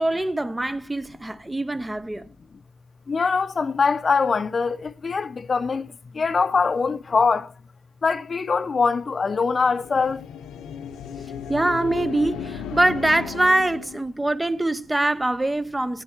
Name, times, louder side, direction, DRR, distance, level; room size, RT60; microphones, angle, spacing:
voice 1, 0.0-2.3 11.5-16.0, right 1 dB, 15° right, 0.7 m, -23 dB
voice 2, 3.1-5.9 6.2-7.5 8.0-10.2, left 5 dB, 40° left, 0.8 m, -22 dB
sound 1, 9.5-14.1, left 8 dB, 90° left, 1.2 m, -35 dB
14.5 x 10.0 x 4.5 m
cardioid pair, 90°, 0 cm